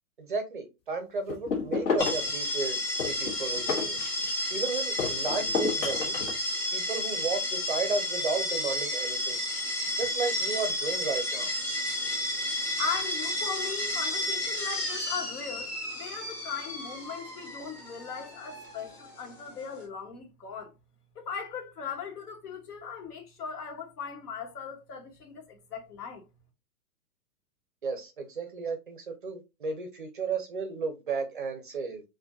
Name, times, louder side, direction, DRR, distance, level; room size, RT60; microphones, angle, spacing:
voice 1, 0.2-2.8 3.0-4.0 4.5-6.2 6.7-9.4 10.0-11.5 27.8-32.0, right 4 dB, 35° right, 0.5 m, -33 dB
sound 1, 1.3-2.3 3.0-4.5 5.0-6.4, left 5 dB, 55° left, 1.7 m, -30 dB
sound 2, 2.0-19.8, left 1 dB, 20° left, 0.8 m, -32 dB
voice 2, 12.8-20.7 21.1-26.3, left 6 dB, 75° left, 1.5 m, -38 dB
4.4 x 2.5 x 2.7 m
hypercardioid pair, 175°, 46 cm